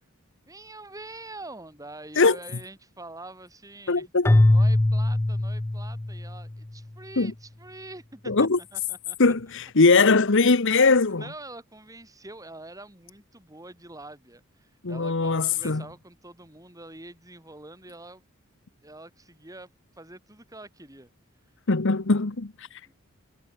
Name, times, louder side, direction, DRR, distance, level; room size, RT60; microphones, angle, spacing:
voice 1, 0.5-4.1 4.5-9.2 10.9-18.3 18.8-21.1 22.8-22.9, right 2 dB, 15° right, 5.6 m, -45 dB
voice 2, 3.9-4.3 7.2-7.3 8.3-8.6 9.2-11.3 14.8-15.8 21.7-22.7, left 3 dB, 60° left, 1.1 m, -21 dB
Keyboard (musical), 4.2-6.5, left 1 dB, 10° left, 0.3 m, -21 dB
head